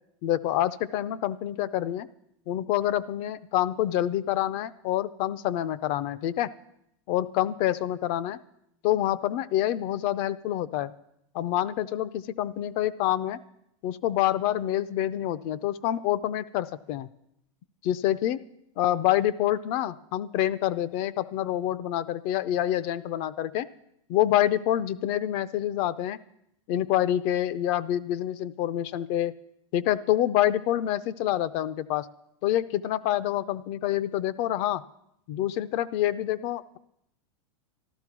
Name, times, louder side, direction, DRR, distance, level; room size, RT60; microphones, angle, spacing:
voice 1, 0.2-2.1 2.5-6.5 7.1-8.4 8.8-10.9 11.3-13.4 13.8-17.1 17.8-18.4 18.8-23.7 24.1-26.2 26.7-29.3 29.7-32.1 32.4-34.8 35.3-36.8, left 12 dB, 35° left, 17 dB, 0.5 m, -27 dB
13.5 x 12.0 x 6.0 m, 0.78 s
supercardioid pair, 155°, 16 cm